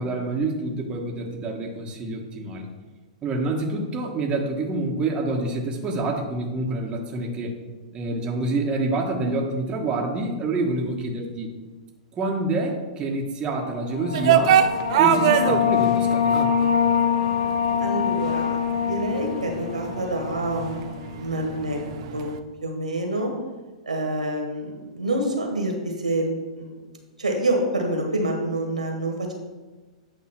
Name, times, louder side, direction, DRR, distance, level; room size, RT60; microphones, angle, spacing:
voice 1, 0.0-2.7 3.2-7.5 7.9-11.5 12.1-14.6 15.0-16.7, right 2 dB, 25° right, 0 dB, 1.3 m, -27 dB
sound 1, 13.8-21.1, left 8 dB, 75° left, 0.8 m, -24 dB
sound 2, 14.1-22.4, right 9 dB, 55° right, 0.6 m, -25 dB
voice 2, 17.8-21.8 22.1-22.3 22.6-23.3 23.8-26.8 27.2-29.3, right 1 dB, 90° right, 2 dB, 1.7 m, -27 dB
8.4 x 3.7 x 5.9 m, 1.2 s
hypercardioid pair, 110°, 4 cm